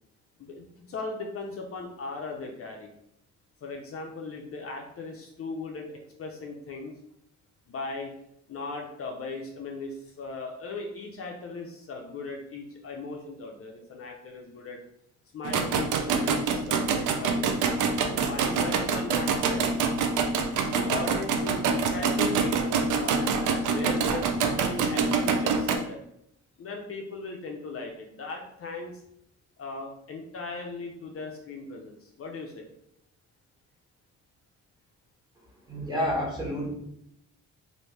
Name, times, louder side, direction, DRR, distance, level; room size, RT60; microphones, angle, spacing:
voice 1, 0.4-2.9 3.6-7.0 7.7-8.1 8.5-14.8 15.3-17.6 18.1-19.7 20.6-26.0 26.6-29.0 29.6-32.7, left 3 dB, 50° left, 1 dB, 0.6 m, -38 dB
sound 1, 15.4-25.8, right 5 dB, 75° right, 0.5 m, -26 dB
voice 2, 35.7-36.7, equal, 15° right, -4 dB, 1.4 m, -29 dB
3.1 x 2.6 x 3.2 m, 0.76 s
cardioid pair, 90°, 30 cm